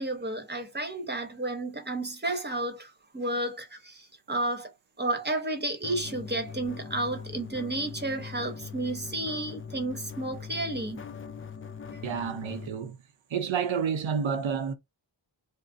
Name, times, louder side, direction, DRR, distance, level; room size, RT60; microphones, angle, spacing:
voice 1, 0.0-4.7 5.0-11.1, right 2 dB, 20° right, 1.0 m, -32 dB
sound 1, 5.8-12.7, left 6 dB, 30° left, 0.4 m, -41 dB
voice 2, 12.0-13.0 13.3-14.7, right 7 dB, 75° right, 0.7 m, -29 dB
2.6 x 2.1 x 3.5 m
wide cardioid pair, 60°, 47 cm